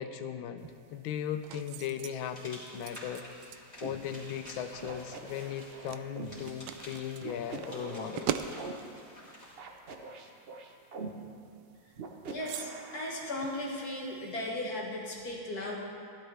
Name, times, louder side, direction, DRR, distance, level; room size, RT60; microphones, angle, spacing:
voice 1, 0.0-3.2 3.5-8.3, left 9 dB, 80° left, 9 dB, 1.4 m, -38 dB
sound 1, 0.6-14.3, right 10 dB, 75° right, 1.1 m, -44 dB
sound 2, 2.1-9.6, equal, 20° left, 3.3 m, -50 dB
sound 3, 3.8-4.0 4.8-6.4 7.2-8.7 9.6-11.1 12.0-13.3, right 4 dB, 55° right, 0.6 m, -43 dB
voice 2, 12.3-15.8, left 1 dB, 50° left, -2 dB, 1.8 m, -36 dB
16.0 x 12.0 x 3.3 m, 2.4 s
omnidirectional pair, 2.2 m